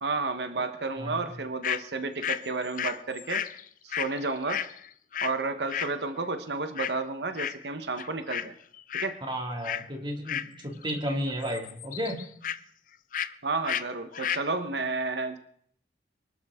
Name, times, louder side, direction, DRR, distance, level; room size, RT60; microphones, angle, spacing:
voice 1, 0.0-3.5 3.8-4.6 5.2-8.5 9.0-9.2 13.4-15.4, right 3 dB, 75° right, 8 dB, 1.2 m, -31 dB
sound 1, 1.6-1.8 2.2-5.4 5.7-5.9 6.8-7.0 7.4-7.7 8.0-8.5 8.7-9.2 9.6-9.9 10.3-11.1 11.3-12.6 13.1-13.4 13.6-13.8 14.1-14.5, left 9 dB, 50° left, 0.5 m, -33 dB
voice 2, 9.3-12.2, equal, 25° right, 2 dB, 2.5 m, -33 dB
24.5 x 12.0 x 3.7 m, 0.63 s
head